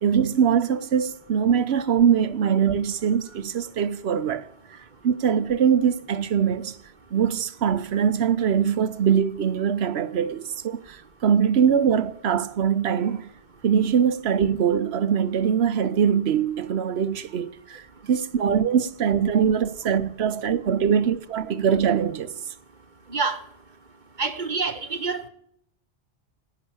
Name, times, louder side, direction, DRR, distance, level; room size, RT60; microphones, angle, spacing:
voice 1, 0.0-4.5 5.0-6.8 7.1-13.3 13.6-17.8 18.1-22.3, right 7 dB, 75° right, 1.0 m, -22 dB
voice 2, 24.2-25.3, right 4 dB, 50° right, 1.2 m, -27 dB
11.5 x 9.5 x 7.1 m
omnidirectional pair, 1.1 m